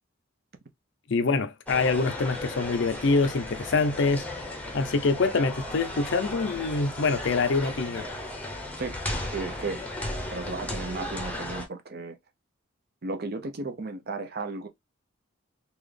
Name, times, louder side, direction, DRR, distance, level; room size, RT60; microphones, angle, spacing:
voice 1, 1.1-4.2 4.7-8.1, left 3 dB, 60° left, 0.5 m, -25 dB
sound 1, 1.7-11.7, left 1 dB, 5° left, 0.7 m, -35 dB
voice 2, 9.3-9.8 10.3-12.2 13.0-14.7, right 3 dB, 50° right, 0.6 m, -34 dB
3.9 x 2.3 x 3.3 m
head